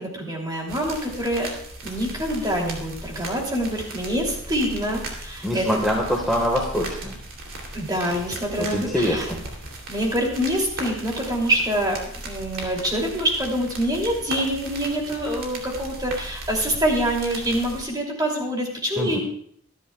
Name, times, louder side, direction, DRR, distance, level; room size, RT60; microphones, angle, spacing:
voice 1, 0.0-1.5 1.8-5.6 7.7-9.3 9.9-12.0 12.2-19.2, equal, 20° right, -1 dB, 2.8 m, -25 dB
sound 1, 0.7-17.8, right 2 dB, 70° right, 2.9 m, -37 dB
voice 2, 5.4-7.2 8.6-9.4 19.0-19.2, equal, ahead, -2 dB, 1.4 m, -24 dB
24.5 x 10.5 x 2.3 m, 0.66 s
head